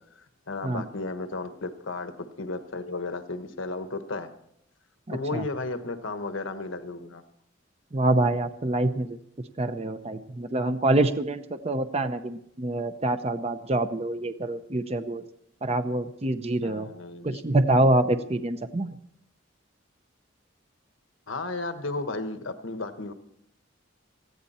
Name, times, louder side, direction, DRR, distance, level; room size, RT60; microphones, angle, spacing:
voice 1, 0.1-4.3 5.1-7.2 16.6-17.4 21.3-23.1, left 3 dB, 80° left, 9 dB, 1.2 m, -34 dB
voice 2, 5.1-5.4 7.9-9.2 9.6-15.2 15.6-16.9 17.2-19.0, right 2 dB, 30° right, 9 dB, 0.7 m, -26 dB
19.0 x 14.5 x 4.3 m, 0.73 s
head